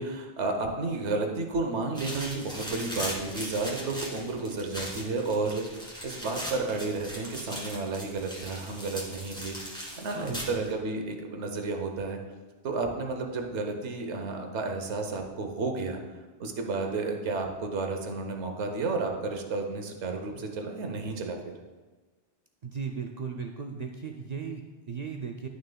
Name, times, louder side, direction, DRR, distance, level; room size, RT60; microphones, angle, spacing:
voice 1, 0.0-12.2 12.6-16.0 16.4-21.5, right 3 dB, 75° right, 3 dB, 1.2 m, -32 dB
sound 1, 1.9-10.7, equal, 5° left, 1.7 m, -39 dB
voice 2, 10.1-10.6 22.6-25.5, right 5 dB, 60° right, 3 dB, 0.4 m, -36 dB
11.5 x 6.4 x 2.3 m, 1.3 s
omnidirectional pair, 1.2 m